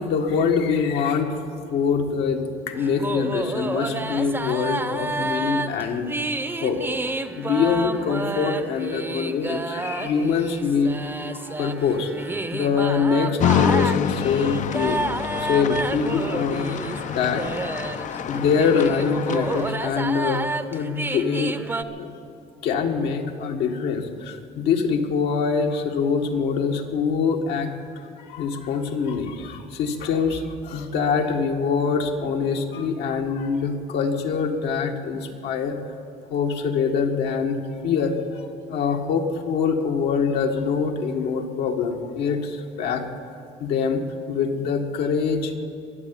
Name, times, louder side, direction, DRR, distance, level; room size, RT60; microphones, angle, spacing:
voice 1, 0.0-1.4 1.7-6.1 6.6-6.8 7.4-10.9 11.3-15.0 15.4-16.7 17.1-17.5 18.1-21.6 22.0-22.1 22.6-35.8 36.3-43.0 43.6-44.0 44.3-45.5, left 5 dB, 80° left, 3 dB, 1.7 m, -24 dB
sound 1, 2.7-21.8, right 2 dB, 15° right, 0.7 m, -30 dB
sound 2, 13.4-19.7, left 9 dB, 45° left, 0.5 m, -27 dB
23.0 x 8.1 x 7.5 m, 2.4 s
cardioid pair, 110°, 17 cm